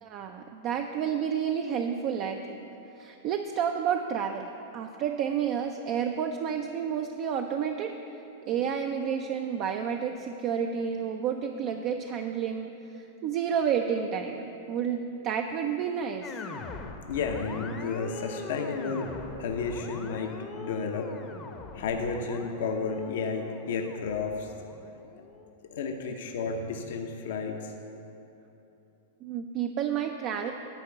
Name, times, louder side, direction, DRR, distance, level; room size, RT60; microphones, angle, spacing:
voice 1, 0.0-2.7 2.9-7.9 8.5-16.3 26.0-26.1 29.2-30.5, right 8 dB, 40° right, 5 dB, 0.5 m, -30 dB
sound 1, 16.2-25.5, left 4 dB, 25° left, 0.7 m, -42 dB
voice 2, 17.0-19.1 19.4-21.1 21.7-24.5 25.7-27.7, left 5 dB, 70° left, 4 dB, 0.8 m, -32 dB
10.5 x 4.5 x 7.8 m, 2.9 s
hypercardioid pair, 130°, 0 cm